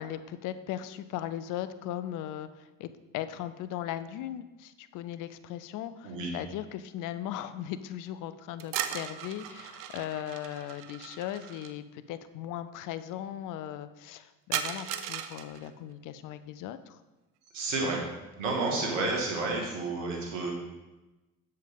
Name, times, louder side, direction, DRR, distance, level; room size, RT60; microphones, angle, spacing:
voice 1, 0.0-17.0 18.7-18.9, left 11 dB, 55° left, 13 dB, 0.7 m, -38 dB
sound 1, 8.6-11.7 14.5-15.7, right 10 dB, 60° right, 0.7 m, -37 dB
voice 2, 17.5-18.0 18.4-20.5, right 3 dB, 80° right, 0 dB, 2.0 m, -30 dB
7.6 x 7.2 x 3.7 m, 1.1 s
hypercardioid pair, 65°, 38 cm